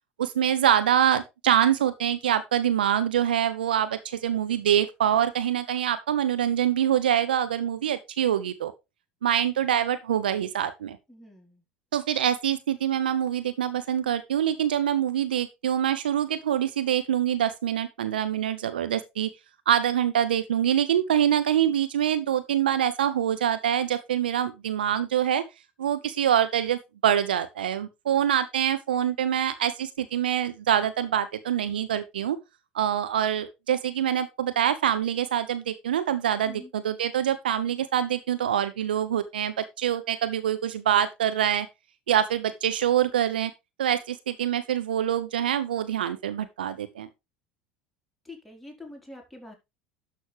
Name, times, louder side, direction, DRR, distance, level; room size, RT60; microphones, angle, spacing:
voice 1, 0.2-8.7 9.2-11.0 11.9-19.3 19.7-25.4 25.8-32.4 32.7-41.7 42.1-43.5 43.8-47.1, right 10 dB, 70° right, 0.8 m, -25 dB
voice 2, 11.1-11.6 36.4-36.7 48.2-49.5, left 2 dB, 5° left, 4.2 m, -45 dB
11.5 x 6.3 x 3.4 m
figure-of-eight pair, 70°, 5 cm